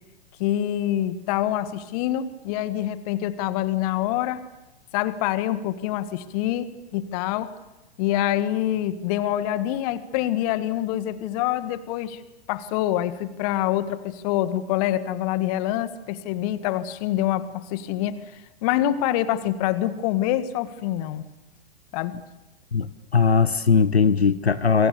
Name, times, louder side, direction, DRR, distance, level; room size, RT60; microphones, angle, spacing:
voice 1, 0.4-4.4 4.9-7.5 8.0-12.2 12.5-18.2 18.6-21.2 21.9-22.1, left 12 dB, 40° left, 13 dB, 1.7 m, -26 dB
voice 2, 22.7-24.9, left 5 dB, 80° left, 15 dB, 0.9 m, -19 dB
28.5 x 23.5 x 6.9 m, 0.98 s
figure-of-eight pair, 105°, 31 cm